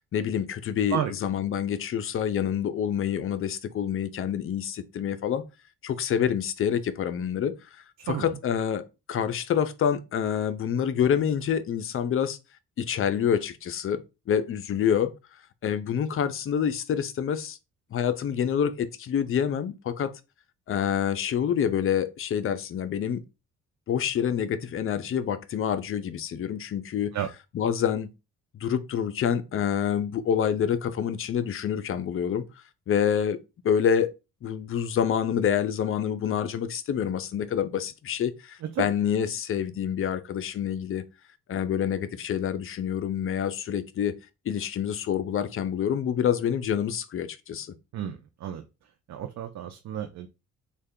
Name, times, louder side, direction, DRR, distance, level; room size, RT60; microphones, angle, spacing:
voice 1, 0.1-5.4 5.8-7.5 8.1-12.4 12.8-14.0 14.3-15.1 15.6-17.6 17.9-20.1 20.7-23.2 23.9-27.1 27.5-28.1 28.5-32.4 32.9-33.4 33.6-34.1 34.4-41.0 41.5-44.1 44.5-47.7, left 8 dB, 45° left, 0.5 m, -27 dB
voice 2, 8.1-8.4 27.1-27.3 38.7-38.9 47.9-48.6 49.1-50.3, right 10 dB, 65° right, 0.5 m, -32 dB
3.2 x 2.3 x 3.6 m
cardioid pair, 90°, 30 cm